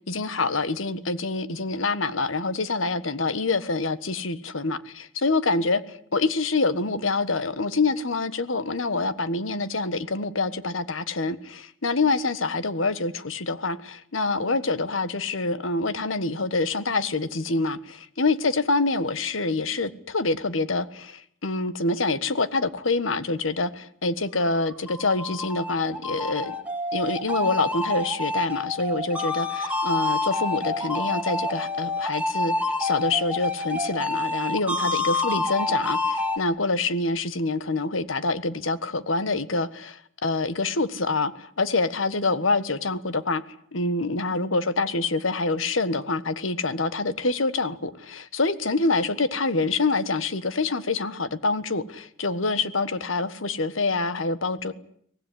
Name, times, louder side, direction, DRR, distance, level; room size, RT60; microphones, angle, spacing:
voice 1, 0.1-26.5 26.9-32.5 32.8-43.4 43.7-54.7, left 3 dB, 85° left, 14 dB, 1.5 m, -26 dB
sound 1, 24.6-36.4, left 2 dB, 5° right, 2.1 m, -28 dB
24.0 x 18.0 x 10.0 m, 0.64 s
head